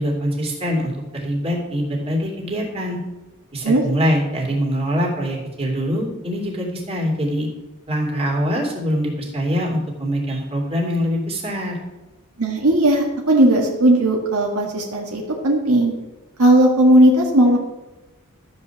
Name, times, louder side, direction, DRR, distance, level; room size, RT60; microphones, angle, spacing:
voice 1, 0.0-3.0 3.5-7.5 7.9-11.8, equal, 25° right, -2 dB, 3.0 m, -23 dB
voice 2, 12.4-15.9 16.4-17.6, right 1 dB, 70° right, 0 dB, 1.8 m, -16 dB
13.0 x 5.4 x 7.2 m, 1.1 s
head